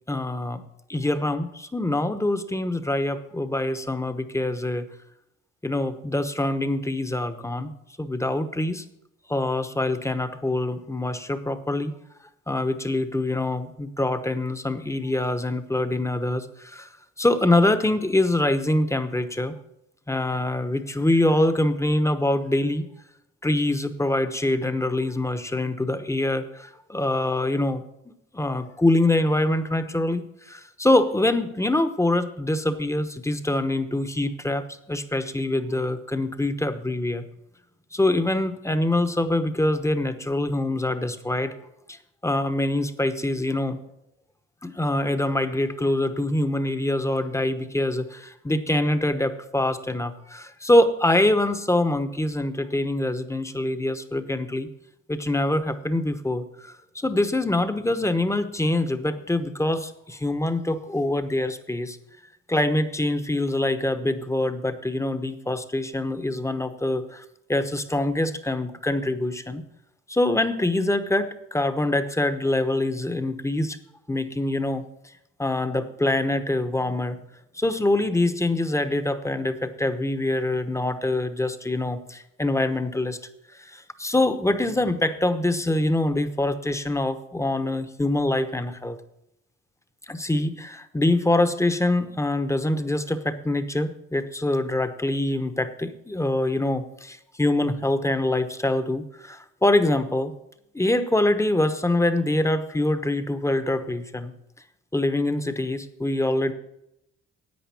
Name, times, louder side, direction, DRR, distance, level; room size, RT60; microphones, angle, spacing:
voice 1, 0.1-0.6 0.9-4.9 5.6-7.7 8.0-8.8 9.3-11.9 12.5-16.9 17.2-19.5 20.1-22.9 23.4-27.8 28.3-37.2 37.9-41.5 41.9-42.0 42.2-43.8 44.6-54.7 55.1-62.0 62.5-67.2 67.5-69.6 70.1-73.8 74.1-74.9 75.4-77.2 77.5-83.2 83.6-89.0 90.1-100.3 100.7-104.3 104.9-106.5, left 1 dB, 10° left, 10 dB, 1.0 m, -24 dB
10.5 x 8.4 x 7.0 m, 0.82 s
cardioid pair, 90°, 30 cm